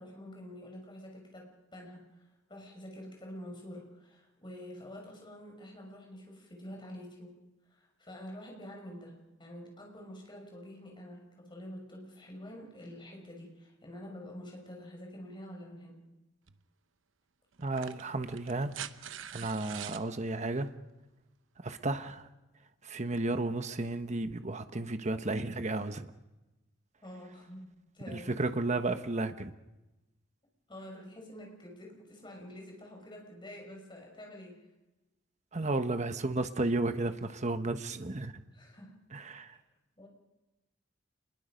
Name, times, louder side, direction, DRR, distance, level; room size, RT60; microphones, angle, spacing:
voice 1, 0.0-16.0 27.0-27.7 27.9-28.3 30.7-34.7 35.6-35.7 38.5-39.0 39.5-39.6 40.0-40.1, equal, 25° left, 1 dB, 6.2 m, -47 dB
sound 1, 16.5-16.6 17.6-20.1 21.6-21.7, right 10 dB, 85° right, 0.9 m, -44 dB
voice 2, 17.6-18.8 19.3-20.7 21.6-22.3 22.8-26.1 28.1-29.5 35.5-38.4 39.1-39.6, right 2 dB, 40° right, 9 dB, 1.1 m, -33 dB
28.0 x 22.0 x 5.2 m, 1.0 s
head